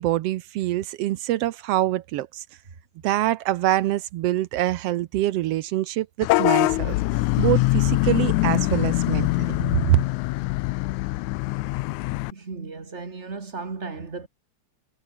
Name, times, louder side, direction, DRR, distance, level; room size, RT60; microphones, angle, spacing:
voice 1, 0.0-2.4 3.0-7.0 7.4-9.5 9.9-10.0, right 15 dB, 75° right, 1.5 m, -25 dB
Vehicle horn car horn honking / Bus, 6.2-12.3, left 20 dB, 90° left, 2.0 m, -23 dB
voice 2, 12.3-14.3, right 4 dB, 25° right, 1.9 m, -35 dB
omnidirectional pair, 3.4 m